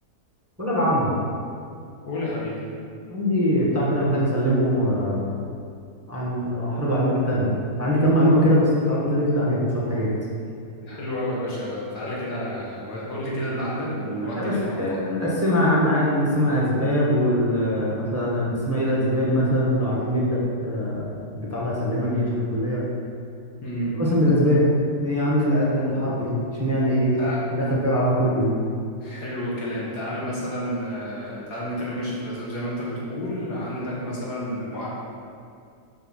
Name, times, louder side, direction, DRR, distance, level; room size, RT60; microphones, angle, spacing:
voice 1, 0.6-1.1 3.1-5.4 6.1-7.5 7.8-10.1 14.4-22.8 24.0-24.6 25.0-28.5, equal, 10° right, -7 dB, 1.3 m, -22 dB
voice 2, 2.0-2.5 10.7-15.0 23.6-23.9 25.9-26.1 27.2-27.4 29.0-34.9, equal, 75° left, -6 dB, 2.4 m, -30 dB
7.7 x 4.7 x 6.3 m, 2.3 s
omnidirectional pair, 1.7 m